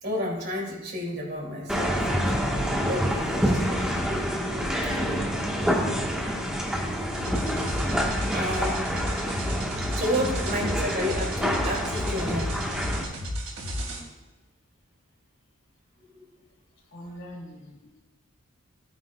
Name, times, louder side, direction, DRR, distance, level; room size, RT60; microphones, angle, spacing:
voice 1, 0.0-2.0 2.3-2.4 2.9-4.0 8.3-8.9 9.8-12.6 16.1-16.2, equal, 50° right, -2 dB, 2.8 m, -31 dB
sound 1, 1.7-13.0, equal, 5° right, 1.4 m, -27 dB
sound 2, 7.1-14.0, equal, 80° right, 2.6 m, -33 dB
voice 2, 8.1-8.7 16.9-18.0, equal, 55° left, -3 dB, 2.9 m, -43 dB
16.5 x 9.6 x 2.4 m, 1.1 s
head